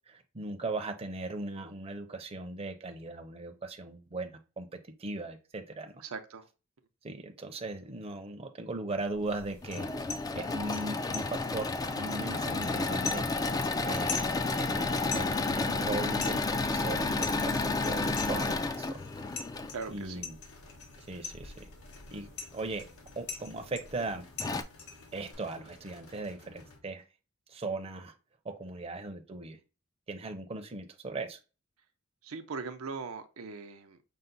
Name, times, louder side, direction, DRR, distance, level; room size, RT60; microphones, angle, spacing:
voice 1, 0.1-4.7 5.0-6.0 7.0-9.9 10.3-13.3 13.8-16.4 16.7-18.9 19.9-20.4 21.1-21.7 22.1-22.3 22.5-22.8 23.2-24.3 25.1-27.0 27.5-28.1 28.4-29.6 30.1-31.4, right 2 dB, 30° right, 0.6 m, -38 dB
voice 2, 6.0-6.5 19.7-20.2 32.2-34.0, right 4 dB, 80° right, 0.6 m, -40 dB
sound 1, 9.3-25.3, left 5 dB, 55° left, 1.2 m, -44 dB
Engine / Mechanisms, 9.4-19.7 21.3-22.1 22.7-22.8 23.1-23.2 24.0-24.1 24.4-24.6, left 3 dB, 20° left, 0.3 m, -31 dB
sound 2, 11.9-26.8, left 3 dB, 85° left, 1.0 m, -55 dB
5.6 x 2.1 x 3.9 m
head